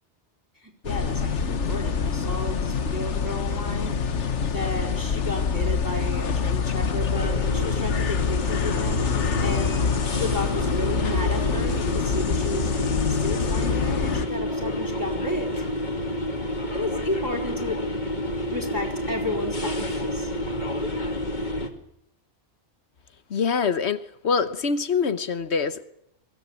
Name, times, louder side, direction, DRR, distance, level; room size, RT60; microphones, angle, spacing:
voice 1, 0.6-4.0 4.5-9.8 10.1-12.8 13.1-15.7 16.7-17.8 18.5-20.3, left 1 dB, 15° right, -1 dB, 4.3 m, -33 dB
sound 1, 0.8-14.3, left 6 dB, 85° left, 1.5 m, -26 dB
sound 2, 7.1-21.7, left 1 dB, 40° left, 2.4 m, -29 dB
voice 2, 23.3-25.8, left 5 dB, 70° left, 12 dB, 1.3 m, -25 dB
23.0 x 17.0 x 9.9 m, 0.77 s
omnidirectional pair, 1.2 m